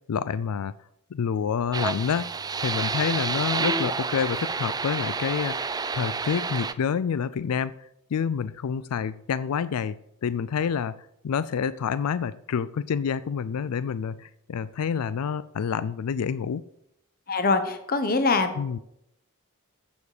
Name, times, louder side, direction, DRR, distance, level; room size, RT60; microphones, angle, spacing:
voice 1, 0.1-0.7 1.1-2.3 2.6-16.6 18.6-18.8, left 7 dB, 85° left, 16 dB, 0.4 m, -28 dB
sound 1, 1.7-6.7, right 4 dB, 15° right, 0.4 m, -29 dB
voice 2, 17.3-18.5, left 3 dB, 40° left, 8 dB, 1.0 m, -23 dB
15.0 x 7.2 x 5.0 m, 0.80 s
head